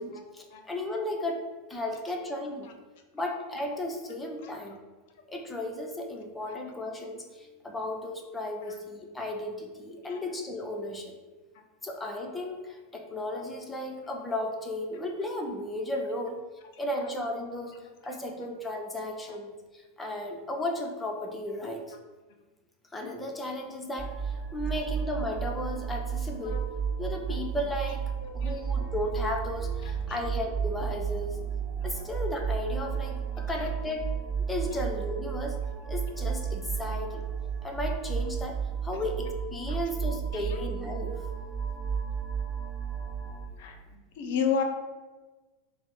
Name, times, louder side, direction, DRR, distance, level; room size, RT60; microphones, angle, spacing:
voice 1, 0.0-1.4 1.7-2.7 3.1-4.8 5.3-11.1 11.8-16.4 16.8-17.7 18.0-21.8 22.9-26.6 27.0-28.0 28.3-31.4 31.8-34.0 34.5-35.6 35.8-37.3 37.6-41.1, left 1 dB, 15° left, 2 dB, 0.7 m, -34 dB
sound 1, 24.0-43.5, right 7 dB, 30° right, 0.7 m, -33 dB
voice 2, 28.2-28.5 30.1-30.2 32.0-32.1 33.4-33.7 39.7-39.8 40.3-40.6 43.6-44.6, left 6 dB, 60° left, 4 dB, 0.6 m, -32 dB
4.1 x 2.0 x 4.2 m, 1.3 s
hypercardioid pair, 90°, 0 cm